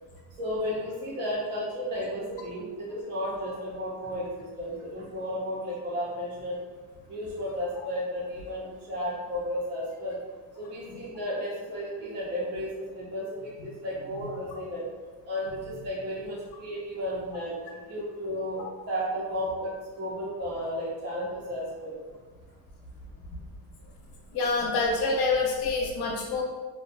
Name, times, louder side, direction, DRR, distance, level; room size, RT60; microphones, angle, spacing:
voice 1, 0.4-6.6 7.1-10.2 10.6-14.8 15.3-22.0, equal, 25° right, -7 dB, 0.6 m, -33 dB
voice 2, 24.3-26.4, left 3 dB, 55° left, -1 dB, 0.8 m, -26 dB
2.6 x 2.1 x 2.5 m, 1.4 s
cardioid pair, 120°, 46 cm